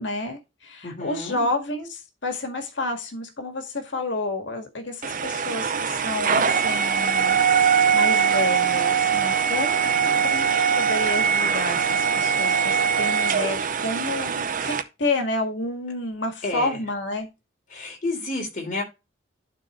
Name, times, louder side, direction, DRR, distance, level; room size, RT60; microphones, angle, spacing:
voice 1, 0.0-7.4 7.9-9.9 10.2-17.3, left 2 dB, 80° left, 5 dB, 1.8 m, -30 dB
voice 2, 0.8-1.5 9.8-10.3 16.4-16.8 17.7-18.8, left 2 dB, 45° left, 1 dB, 3.5 m, -31 dB
sound 1, 5.0-14.8, right 6 dB, 45° right, 0.6 m, -22 dB
11.5 x 4.1 x 3.0 m, 0.26 s
head